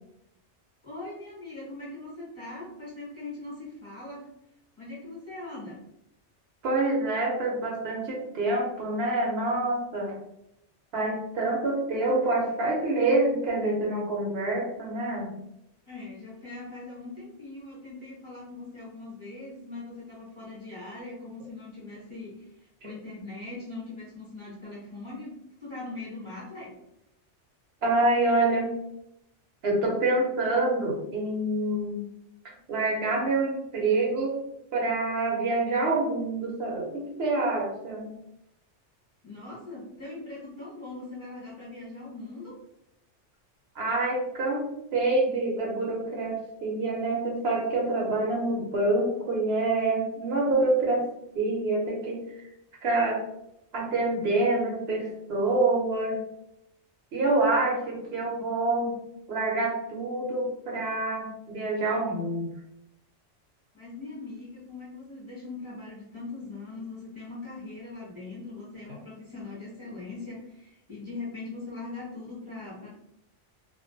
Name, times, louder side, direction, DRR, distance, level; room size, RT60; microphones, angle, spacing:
voice 1, 0.8-4.3 4.8-5.8 15.8-25.3 25.6-26.7 32.5-32.6 39.2-42.6 63.7-72.9, left 3 dB, 30° left, -7 dB, 0.9 m, -41 dB
voice 2, 6.6-10.2 10.9-15.3 22.8-22.9 27.8-28.7 29.6-32.1 32.7-34.4 34.7-38.1 43.8-44.7 44.9-51.1 51.3-52.5 52.8-53.2 53.7-56.2 57.1-58.9 59.3-62.5, right 2 dB, 65° right, -2 dB, 0.8 m, -26 dB
2.3 x 2.2 x 2.5 m, 0.81 s
omnidirectional pair, 1.2 m